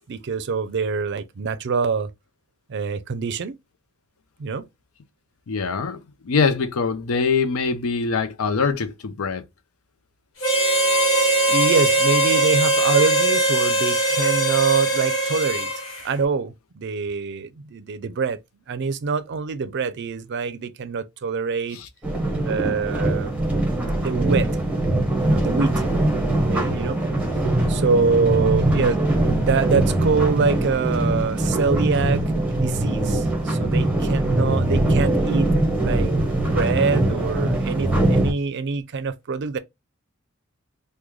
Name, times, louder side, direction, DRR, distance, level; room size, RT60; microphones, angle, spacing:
voice 1, 0.1-2.1 2.7-3.6 4.4-4.7 11.5-15.7 16.0-18.4 18.7-21.8 22.4-23.3 24.0-24.5 25.2-25.7 26.5-27.0 27.7-35.5 35.8-39.6, right 4 dB, 55° right, 0.4 m, -25 dB
voice 2, 5.5-6.0 6.2-9.4 21.7-21.9, left 5 dB, 90° left, 0.5 m, -23 dB
Harmonica, 10.4-16.0, right 2 dB, 70° left, 1.2 m, -20 dB
sound 1, 22.0-38.3, right 1 dB, 5° right, 0.9 m, -22 dB
3.1 x 2.2 x 3.5 m
head